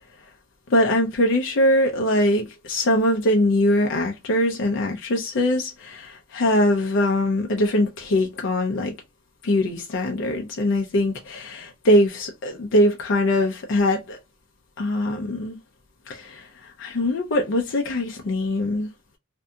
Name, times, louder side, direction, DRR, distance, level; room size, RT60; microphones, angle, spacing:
voice 1, 0.7-8.9 9.4-14.2 14.8-15.6 16.1-18.9, left 1 dB, 60° left, 0.5 m, -22 dB
2.6 x 2.6 x 2.3 m
head